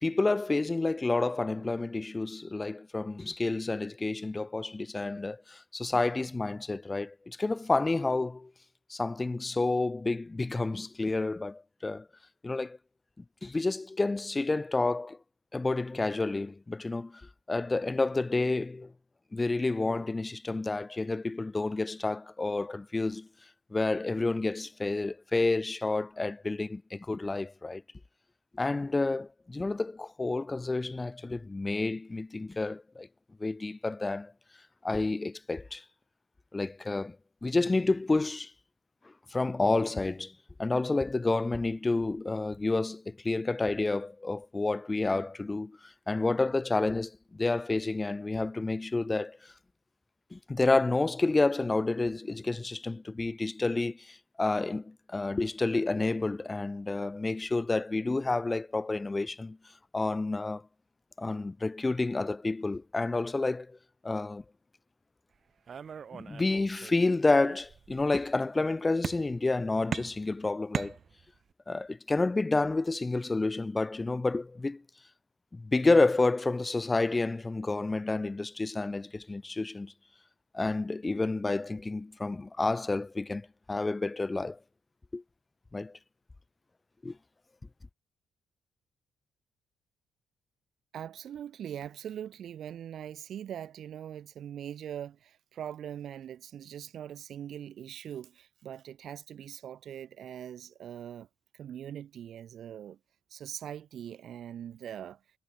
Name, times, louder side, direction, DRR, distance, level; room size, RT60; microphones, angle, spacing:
voice 1, 0.0-8.5 8.9-12.1 12.4-12.8 13.2-15.2 15.5-17.2 17.5-18.9 19.3-23.3 23.7-27.8 28.5-33.1 33.4-34.3 34.8-35.8 36.5-37.2 37.4-38.5 39.3-40.3 40.6-49.5 50.3-59.6 59.9-60.6 61.2-63.8 64.0-64.4 66.1-71.0 71.7-74.8 75.5-79.9 80.5-84.6 85.1-85.2 85.7-85.9 87.0-87.2, left 3 dB, 20° left, 1.0 m, -29 dB
sound 1, 65.7-67.0 67.4-68.1 69.0-69.6 69.9-71.5, right 7 dB, 50° right, 0.6 m, -38 dB
voice 2, 90.9-101.3 101.5-103.0 103.3-105.2, right 10 dB, 65° right, 1.6 m, -42 dB
cardioid pair, 90°, 0 cm